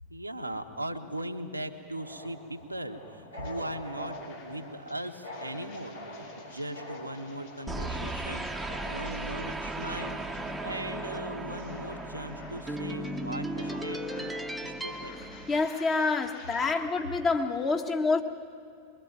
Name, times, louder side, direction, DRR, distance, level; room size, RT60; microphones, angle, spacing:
voice 1, 0.1-14.3 14.6-15.3, right 1 dB, 90° right, 3 dB, 1.3 m, -39 dB
sound 1, 1.9-14.9, left 1 dB, 85° left, 3.8 m, -46 dB
sound 2, 3.4-3.5 3.9-17.0, left 4 dB, 55° left, 7.7 m, -52 dB
sound 3, 7.7-16.2, right 1 dB, 5° right, 1.1 m, -36 dB
voice 2, 15.5-18.2, left 4 dB, 25° left, 4 dB, 1.7 m, -27 dB
24.0 x 22.0 x 9.2 m, 2.4 s
figure-of-eight pair, 90°, 0 cm